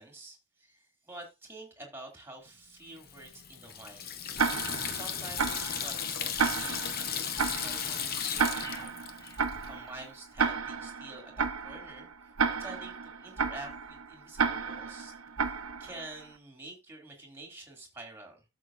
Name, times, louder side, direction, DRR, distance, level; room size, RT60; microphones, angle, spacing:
voice 1, 0.0-4.1 4.9-8.7 9.7-15.2 15.8-18.4, right 2 dB, 10° right, 2.5 m, -48 dB
Water tap faucet / Sink (filling or washing), 3.0-9.7, left 7 dB, 45° left, 0.9 m, -36 dB
Tick-tock, 4.4-16.2, right 5 dB, 85° right, 0.9 m, -33 dB
sound 1, 8.6-10.5 10.8-11.0, left 2 dB, 15° left, 1.4 m, -51 dB
12.5 x 6.6 x 2.6 m
head